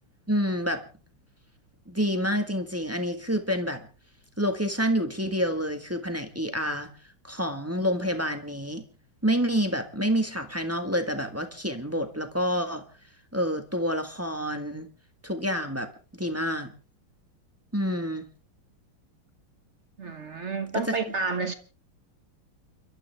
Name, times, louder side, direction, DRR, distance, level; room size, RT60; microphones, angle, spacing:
voice 1, 0.3-0.8 1.9-3.8 4.4-6.9 7.2-8.8 9.2-12.8 13.3-14.9 15.2-15.9 16.2-16.7 17.7-18.3 20.7-21.0, equal, 10° right, 1.3 m, -28 dB
voice 2, 20.0-21.5, right 4 dB, 40° right, 1.3 m, -30 dB
29.5 x 12.5 x 3.5 m
omnidirectional pair, 2.4 m